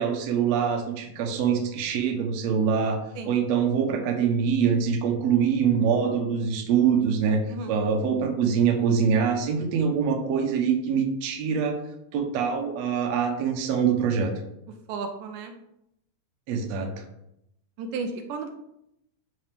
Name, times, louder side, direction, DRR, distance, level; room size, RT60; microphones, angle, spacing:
voice 1, 0.0-3.0 3.3-7.4 7.7-11.8 12.1-14.3 16.5-16.9, right 7 dB, 65° right, 3 dB, 2.0 m, -24 dB
voice 2, 14.9-15.5 17.8-18.5, right 4 dB, 80° right, 5 dB, 2.2 m, -33 dB
10.5 x 3.9 x 3.5 m, 0.81 s
omnidirectional pair, 3.7 m